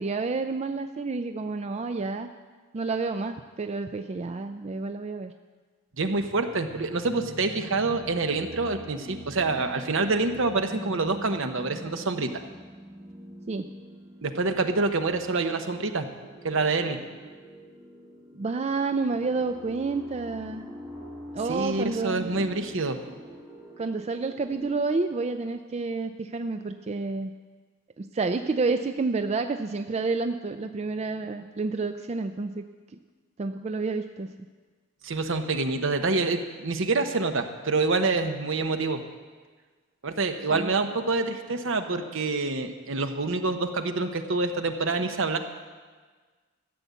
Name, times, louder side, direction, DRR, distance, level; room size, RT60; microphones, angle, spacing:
voice 1, 0.0-2.3 2.7-5.3 13.5-13.7 18.3-20.7 21.3-22.5 23.8-27.3 28.0-32.7 32.9-33.0 33.4-34.3 40.5-40.8, right 3 dB, 30° right, 8 dB, 0.4 m, -29 dB
voice 2, 6.0-12.3 14.2-16.1 16.4-17.0 21.5-23.0 35.0-39.0 40.0-45.4, right 3 dB, 65° right, 7 dB, 1.0 m, -27 dB
sound 1, 6.1-24.7, equal, 10° right, 4.1 m, -45 dB
14.0 x 7.0 x 8.2 m, 1.5 s
head